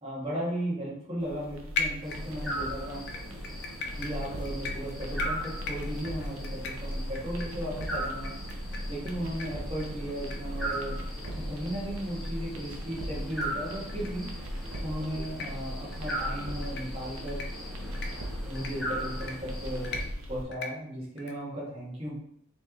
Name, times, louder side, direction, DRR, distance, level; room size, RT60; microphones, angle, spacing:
voice 1, 0.0-3.1 3.9-8.3 8.9-11.0 11.3-14.3 14.8-17.4 18.5-19.9 20.3-22.1, equal, 25° right, -7 dB, 1.5 m, -36 dB
sound 1, 1.2-20.4, equal, 70° right, 0.8 m, -38 dB
sound 2, 1.8-2.6 3.1-9.1 9.4-9.5 9.8-9.9 10.3-10.4 10.7-10.8 11.2-11.3 11.7-11.8 12.2-12.3 13.3-13.5 13.9-14.1 14.6-14.8 15.2-15.5 15.9-16.2 16.6-16.8 17.3-17.5 17.9-18.1 18.6-18.7 19.2-19.3 19.8-20.0 20.5-20.7 21.2-21.3, left 5 dB, 50° left, 0.6 m, -37 dB
sound 3, 2.0-20.0, right 1 dB, ahead, 0.8 m, -39 dB
4.3 x 3.2 x 3.6 m, 0.72 s
head